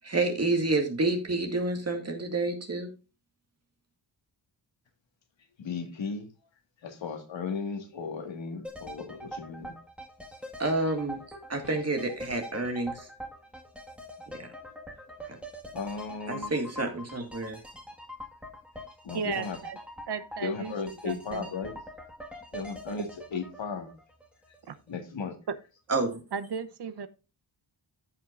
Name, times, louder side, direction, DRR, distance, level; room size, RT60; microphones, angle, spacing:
voice 1, 0.0-2.9 10.6-11.2 11.5-13.1 14.3-14.5 16.3-17.6 25.9-26.2, right 2 dB, 35° right, 4 dB, 2.1 m, -29 dB
voice 2, 5.6-6.3 6.8-9.7 15.7-16.5 19.0-19.6 20.4-21.7 22.5-23.9 24.9-25.4, left 5 dB, 75° left, 5 dB, 1.8 m, -35 dB
sound 1, 8.6-24.6 24.9-25.0, equal, ahead, 1.7 m, -44 dB
voice 3, 19.1-19.8 20.1-20.7 21.0-21.5 24.7-24.8 26.3-27.1, right 6 dB, 60° right, 11 dB, 0.9 m, -35 dB
14.5 x 5.7 x 2.5 m, 0.31 s
wide cardioid pair, 110°, 46 cm